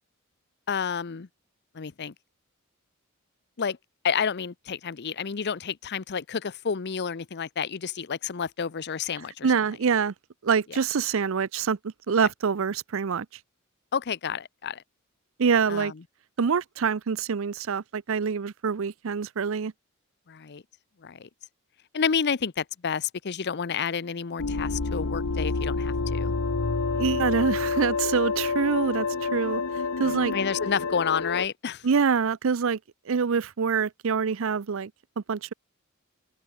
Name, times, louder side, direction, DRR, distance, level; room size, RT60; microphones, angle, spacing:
voice 1, 0.7-1.3 1.7-2.1 3.6-3.8 4.0-9.5 13.9-14.8 15.7-15.9 20.3-20.6 21.0-21.3 21.9-26.3 30.0-31.9, left 6 dB, 50° left, 0.6 m, -30 dB
voice 2, 9.4-10.1 10.4-13.3 15.4-15.9 16.4-19.7 26.9-29.6 30.0-30.4 31.8-32.8 33.1-34.9 35.2-35.5, right 6 dB, 65° right, 0.5 m, -25 dB
sound 1, 24.4-31.5, left 4 dB, 90° left, 1.0 m, -28 dB
open air
head